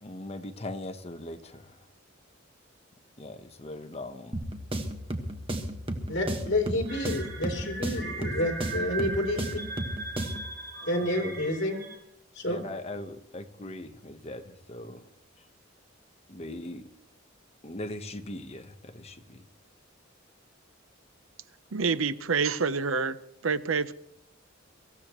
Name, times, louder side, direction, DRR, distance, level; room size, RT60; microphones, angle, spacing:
voice 1, 0.0-1.8 3.2-4.4 8.2-8.4 11.0-11.3 12.5-15.0 16.3-16.9 17.6-19.5, left 1 dB, 30° left, 7 dB, 1.1 m, -40 dB
sound 1, 4.3-10.5, right 1 dB, 30° right, 1.5 m, -34 dB
voice 2, 6.1-9.6 10.8-11.8 12.3-12.6, left 1 dB, 60° left, 2 dB, 3.2 m, -29 dB
sound 2, 6.9-12.0, right 3 dB, 60° right, 4.6 m, -39 dB
voice 3, 21.7-23.2 23.4-23.9, right 5 dB, 85° right, 14 dB, 0.7 m, -27 dB
24.0 x 15.5 x 3.1 m, 0.78 s
head